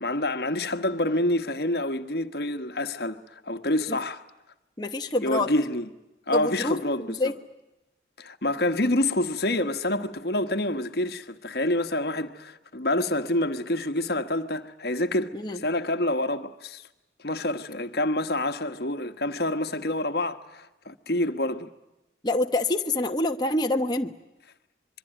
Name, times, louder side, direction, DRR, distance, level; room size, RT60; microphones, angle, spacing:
voice 1, 0.0-4.2 5.2-5.9 6.3-7.3 8.2-16.8 17.2-21.7, left 1 dB, 60° left, 1.3 m, -27 dB
voice 2, 4.8-5.5 6.3-6.8 7.2-7.3 15.3-15.6 22.2-24.1, left 2 dB, 25° left, 1.1 m, -26 dB
26.0 x 23.0 x 8.9 m
head